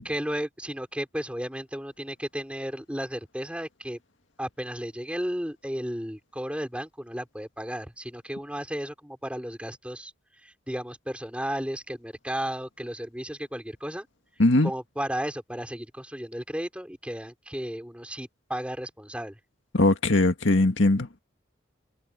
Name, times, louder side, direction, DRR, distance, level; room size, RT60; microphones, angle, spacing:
voice 1, 0.0-4.0 4.4-10.1 10.4-14.1 14.6-19.4, equal, 5° right, 4.8 m, -34 dB
voice 2, 19.7-21.2, left 2 dB, 75° left, 1.9 m, -20 dB
head